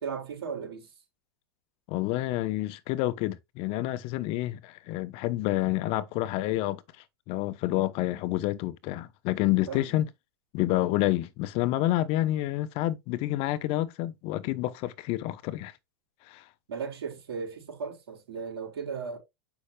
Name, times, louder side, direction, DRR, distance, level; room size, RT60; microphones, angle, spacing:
voice 1, 0.0-0.9 9.7-9.9 16.7-19.2, right 6 dB, 90° right, 3.8 m, -36 dB
voice 2, 1.9-6.8 7.3-10.1 10.5-15.7 16.3-16.4, left 16 dB, 50° left, 0.9 m, -28 dB
8.3 x 5.7 x 2.3 m
hypercardioid pair, 120°, 13 cm